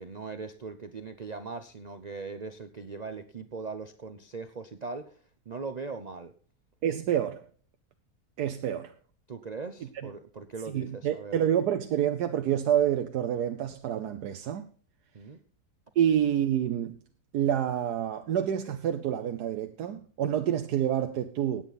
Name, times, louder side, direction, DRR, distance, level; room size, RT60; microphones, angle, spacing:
voice 1, 0.0-5.2 5.5-6.3 9.3-11.4 15.1-15.4, right 4 dB, 50° right, 0.5 m, -40 dB
voice 2, 6.8-7.4 8.4-8.9 10.7-14.7 16.0-17.0 17.3-21.6, right 10 dB, 75° right, 1.3 m, -28 dB
16.5 x 9.1 x 4.0 m
omnidirectional pair, 1.8 m